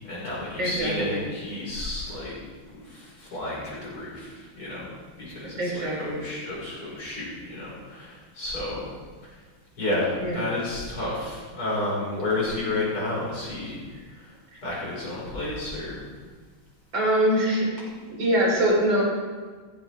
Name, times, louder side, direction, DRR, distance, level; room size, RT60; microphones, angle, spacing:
voice 1, 0.1-2.3 2.7-4.9 5.2-8.9 9.2-9.3 9.8-13.8 14.1-14.3 14.6-16.1, left 2 dB, 85° left, -6 dB, 6.8 m, -31 dB
voice 2, 0.6-1.2 5.4-6.3 10.2-10.5 14.5-14.6 16.9-17.7 18.1-19.0, right 1 dB, 60° right, -3 dB, 4.9 m, -24 dB
17.5 x 16.0 x 3.8 m, 1.5 s
omnidirectional pair, 2.3 m